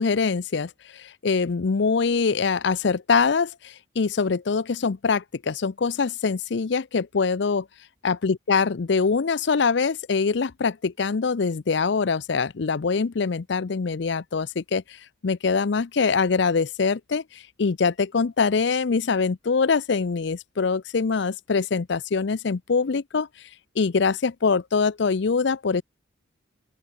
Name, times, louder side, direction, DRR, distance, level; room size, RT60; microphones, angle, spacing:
voice 1, 0.0-7.7 8.0-14.8 15.2-23.3 23.8-25.8, left 5 dB, 60° left, 0.5 m, -24 dB
open air
head